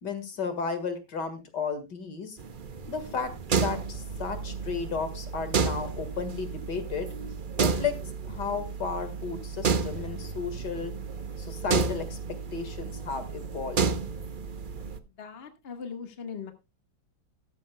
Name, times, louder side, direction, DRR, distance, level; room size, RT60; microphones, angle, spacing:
voice 1, 0.0-2.4 2.9-7.1 7.6-8.0 8.2-10.9 11.4-13.8, left 5 dB, 65° left, 10 dB, 2.4 m, -33 dB
sound 1, 2.4-15.0, right 5 dB, 55° right, 0.5 m, -31 dB
voice 2, 15.2-16.5, left 6 dB, 35° left, 6 dB, 1.5 m, -39 dB
14.5 x 13.0 x 2.2 m, 0.25 s
omnidirectional pair, 2.1 m